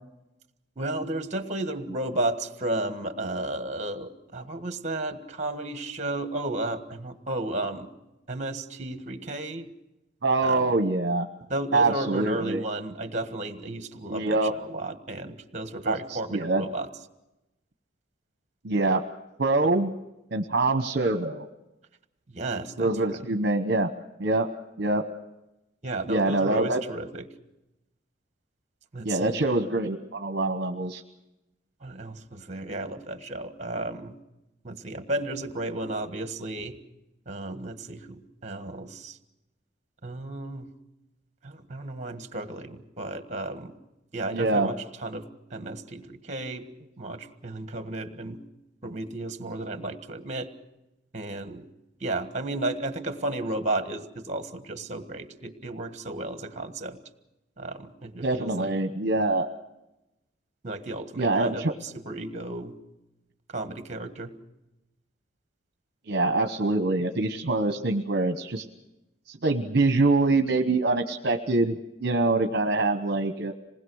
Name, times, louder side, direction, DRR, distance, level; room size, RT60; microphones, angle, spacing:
voice 1, 0.8-7.9 8.3-9.7 10.4-10.7 11.5-16.9 22.3-23.2 25.8-27.3 28.9-29.5 31.8-34.2 34.6-36.8 37.3-39.2 40.0-40.7 41.4-43.7 44.1-46.6 47.0-48.4 48.8-50.5 51.1-51.7 52.0-57.0 57.6-58.7 60.6-62.7 63.5-64.3, right 2 dB, 40° right, 9 dB, 1.6 m, -33 dB
voice 2, 10.2-11.3 11.7-12.6 14.1-14.5 15.8-16.6 18.6-19.0 19.4-19.9 20.3-21.5 22.8-23.9 24.2-24.5 24.8-25.0 26.1-26.8 29.0-31.0 44.3-44.7 58.2-59.5 61.2-61.7 66.1-68.6 69.3-73.5, right 2 dB, 60° right, 6 dB, 1.0 m, -24 dB
27.0 x 20.0 x 6.4 m, 0.95 s
head